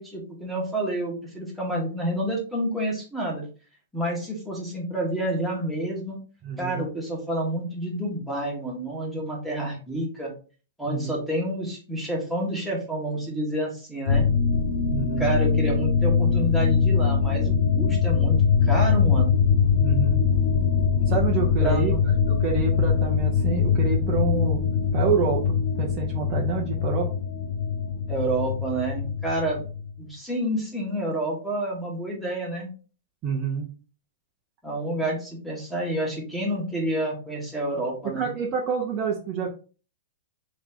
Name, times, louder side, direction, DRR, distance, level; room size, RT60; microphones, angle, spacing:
voice 1, 0.0-3.4 3.9-6.2 6.6-10.3 10.8-14.3 15.2-18.4 18.6-19.4 21.6-22.0 28.1-29.6 30.0-32.7 34.6-38.3, right 1 dB, ahead, -2 dB, 1.5 m, -29 dB
voice 2, 6.4-6.9 10.8-11.1 14.9-15.3 19.8-20.2 21.1-21.9 22.3-24.6 24.9-27.1 33.2-33.7 38.0-39.5, right 6 dB, 30° right, -2 dB, 0.9 m, -28 dB
sound 1, 14.1-30.0, left 6 dB, 75° left, 0.8 m, -22 dB
3.6 x 3.1 x 3.6 m, 0.37 s
hypercardioid pair, 140°, 0 cm